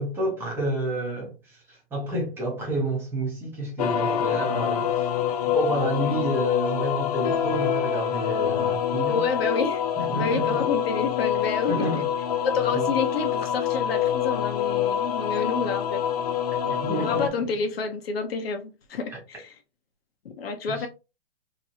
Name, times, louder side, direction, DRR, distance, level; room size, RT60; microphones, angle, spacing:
voice 1, 0.0-5.1 5.4-9.2 10.0-10.6 11.7-12.0 12.7-12.9 16.6-17.3 19.1-19.2 20.7-20.9, right 1 dB, 5° right, 0.9 m, -29 dB
sound 1, 3.8-17.3, left 9 dB, 40° left, 0.4 m, -26 dB
voice 2, 9.1-9.8 10.1-11.9 12.5-16.0 17.0-19.5 20.2-20.9, left 4 dB, 70° left, 0.8 m, -29 dB
3.0 x 2.9 x 2.6 m
hypercardioid pair, 160°, 31 cm